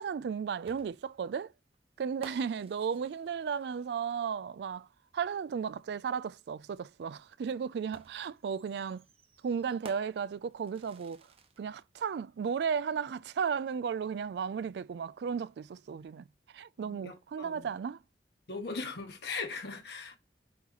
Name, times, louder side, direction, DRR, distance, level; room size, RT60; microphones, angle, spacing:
voice 1, 0.0-1.5 2.0-4.9 5.1-9.0 9.4-11.3 11.6-18.0, right 6 dB, 65° right, 0.3 m, -34 dB
sound 1, 0.7-4.3 5.8-5.9 7.9-11.8, right 3 dB, 35° right, 0.8 m, -54 dB
voice 2, 16.8-17.6 18.5-20.2, left 4 dB, 65° left, 1.5 m, -39 dB
8.3 x 2.9 x 4.0 m
head